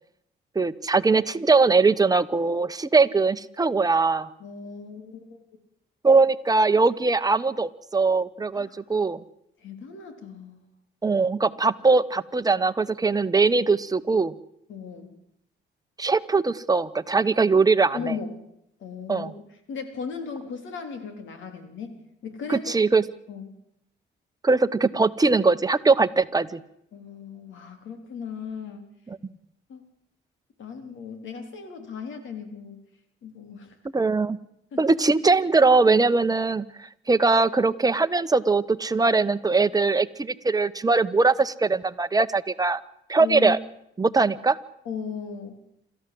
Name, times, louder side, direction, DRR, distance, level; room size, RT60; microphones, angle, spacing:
voice 1, 0.5-4.3 6.0-9.2 11.0-14.3 16.0-18.0 19.1-19.3 22.5-23.0 24.4-26.6 33.9-34.4 34.8-42.8 43.1-43.6 44.0-44.6, right 3 dB, 20° right, 11 dB, 1.0 m, -21 dB
voice 2, 4.4-5.4 8.5-8.8 9.6-10.7 14.7-15.1 17.9-18.4 18.8-19.3 19.7-22.7 23.3-23.5 26.9-28.8 29.7-29.9 30.6-32.8 33.2-33.8 34.7-35.0 43.2-43.6 44.9-45.6, left 5 dB, 75° left, 7 dB, 3.8 m, -36 dB
27.5 x 14.0 x 7.8 m, 0.78 s
cardioid pair, 90°, 20 cm